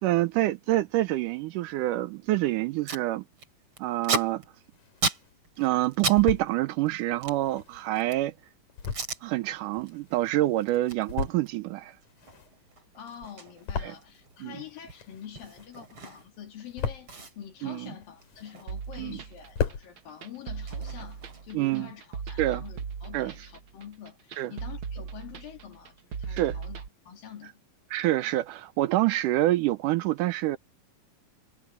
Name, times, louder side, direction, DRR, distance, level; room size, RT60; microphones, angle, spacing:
voice 1, 0.0-3.2 3.8-4.4 5.6-8.3 9.2-12.0 13.8-13.9 14.4-14.6 17.6-17.9 19.0-19.2 21.5-21.9 22.4-22.6 23.1-23.3 24.4-24.5 26.3-26.6 27.9-30.6, right 16 dB, 80° right, 1.9 m, -26 dB
Packing tape duct tape, 2.9-3.1 3.4-6.2 6.5-8.3 8.8-9.2 9.7-9.9 10.2-16.5 16.7-16.8 17.1-19.4 19.7-21.7, right 4 dB, 35° right, 4.3 m, -36 dB
sound 1, 4.3-5.3 5.8-6.5 7.2-10.5 10.9-11.7 12.0-14.4 14.7-15.9 16.3-17.3 17.8-18.8 19.1-19.2 19.4-19.9, left 6 dB, 55° left, 4.0 m, -36 dB
voice 2, 12.9-27.6, left 9 dB, 70° left, 4.7 m, -46 dB
sound 2, 18.7-26.9, right 6 dB, 60° right, 1.4 m, -38 dB
omnidirectional pair, 4.2 m